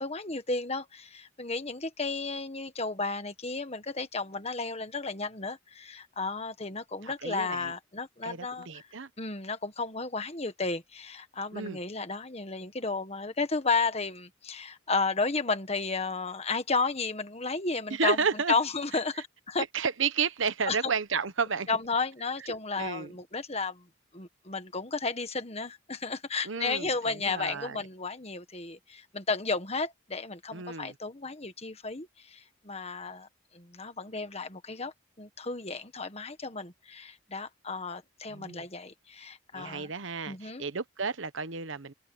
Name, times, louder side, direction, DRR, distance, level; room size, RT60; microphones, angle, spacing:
voice 1, 0.0-8.8 9.2-18.2 18.5-19.6 20.7-20.8 21.7-23.8 24.1-33.3 33.5-39.9 40.3-40.6, left 4 dB, 30° left, 1.6 m, -33 dB
voice 2, 7.0-7.7 8.2-9.1 11.5-11.8 17.9-18.5 19.6-21.7 22.4-23.1 26.4-27.8 30.5-30.9 38.3-38.6 39.5-41.9, right 5 dB, 65° right, 1.1 m, -32 dB
head